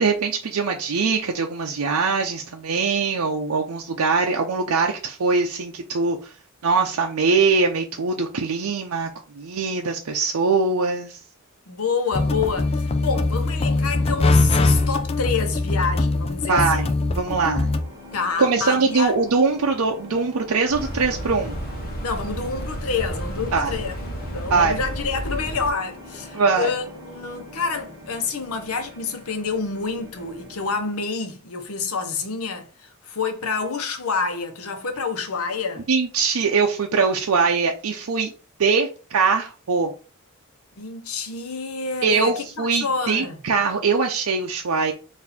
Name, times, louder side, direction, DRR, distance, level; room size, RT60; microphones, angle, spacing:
voice 1, 0.0-6.3 6.6-9.1 9.3-11.2 16.5-16.9 17.2-17.7 18.4-21.6 23.5-23.7 24.5-24.8 26.3-26.7 35.9-38.3 38.6-39.9 42.0-44.9, right 4 dB, 80° right, 0.6 m, -22 dB
voice 2, 11.7-16.9 18.1-19.1 22.0-23.9 24.3-35.9 40.8-43.4, left 5 dB, 80° left, 0.9 m, -28 dB
sound 1, 12.1-17.8, left 2 dB, 25° left, 0.4 m, -22 dB
sound 2, 17.6-30.9, left 1 dB, 20° right, 1.3 m, -43 dB
sound 3, 20.7-25.7, equal, 45° left, 0.9 m, -31 dB
4.1 x 2.6 x 4.1 m
head